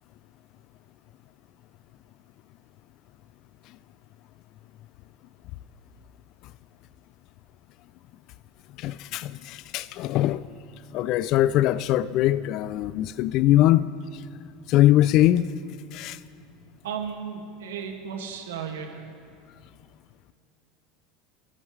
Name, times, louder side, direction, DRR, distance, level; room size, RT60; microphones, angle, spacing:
voice 1, 8.8-10.4 10.9-13.9 14.7-15.5 15.9-16.2, left 14 dB, 55° left, 0.4 m, -22 dB
voice 2, 13.4-13.8 16.8-19.1, right 7 dB, 80° right, 2.0 m, -35 dB
29.5 x 14.0 x 3.3 m
hypercardioid pair, 85°, 0 cm